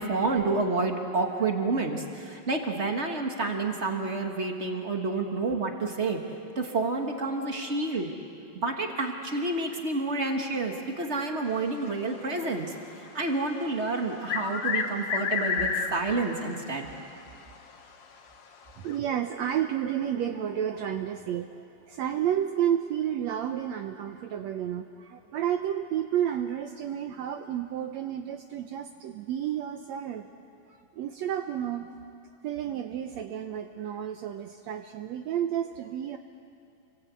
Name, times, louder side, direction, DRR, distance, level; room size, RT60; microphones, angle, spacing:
voice 1, 0.0-6.2 6.5-8.1 8.5-12.7 13.1-16.9, right 3 dB, 55° right, 3 dB, 0.7 m, -29 dB
sound 1, 14.0-16.2 16.6-16.7 17.6-17.7 18.9-19.0, left 6 dB, 55° left, 2.5 m, -29 dB
voice 2, 18.8-30.3 30.7-31.9 32.4-36.2, right 10 dB, 80° right, 7 dB, 1.5 m, -31 dB
29.5 x 24.0 x 8.4 m, 2.6 s
omnidirectional pair, 4.0 m